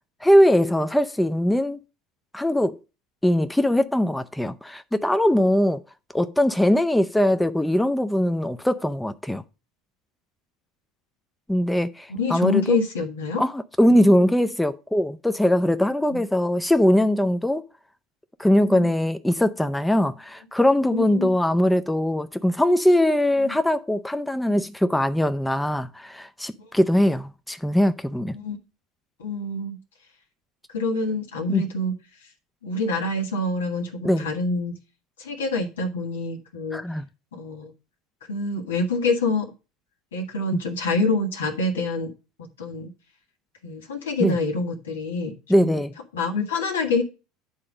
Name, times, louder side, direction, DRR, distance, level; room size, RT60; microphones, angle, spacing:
voice 1, 0.2-1.8 2.3-2.8 3.2-5.8 6.1-9.4 11.5-12.8 13.4-17.6 18.4-28.4 31.5-31.6 34.0-34.3 36.7-37.1 40.5-40.6 44.2-44.4 45.5-45.9, left 1 dB, 5° left, 0.5 m, -21 dB
voice 2, 12.2-13.4 13.9-14.1 16.1-16.2 18.6-18.9 20.9-21.3 23.4-23.6 26.6-26.7 28.3-28.6 29.2-29.8 30.7-31.9 32.6-34.7 35.2-36.8 37.3-37.7 38.3-39.5 40.1-42.1 42.4-42.9 43.6-45.8 46.1-47.0, left 2 dB, 80° left, 1.4 m, -26 dB
9.6 x 3.8 x 5.0 m
hypercardioid pair, 75°, 0 cm